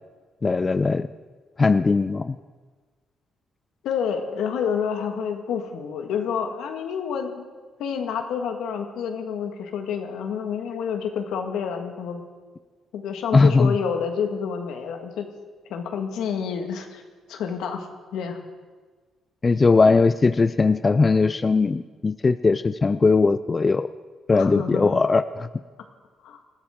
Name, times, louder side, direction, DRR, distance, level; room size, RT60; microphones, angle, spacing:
voice 1, 0.4-1.1 1.6-2.4 13.3-13.7 19.4-23.9 24.3-25.5, left 4 dB, 30° left, 13 dB, 0.4 m, -19 dB
voice 2, 3.8-7.5 7.8-12.2 12.9-15.3 15.6-17.0 17.3-17.9 18.1-18.4 24.3-25.0 26.2-26.4, left 7 dB, 85° left, 5 dB, 1.7 m, -28 dB
20.5 x 14.5 x 3.7 m, 1.4 s
cardioid pair, 90°, 0 cm